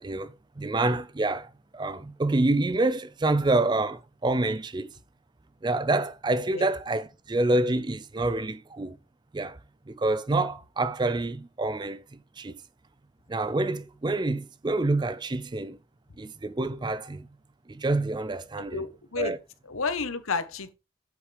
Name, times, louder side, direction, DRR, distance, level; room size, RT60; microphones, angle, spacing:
voice 1, 0.0-4.9 5.6-9.0 9.3-9.6 9.9-12.5 13.3-15.8 16.2-17.3 17.7-18.8 19.2-19.4, right 2 dB, 20° right, 0.4 m, -27 dB
voice 2, 18.6-19.3 19.7-20.7, left 4 dB, 85° left, 1.2 m, -31 dB
8.3 x 8.1 x 3.4 m
head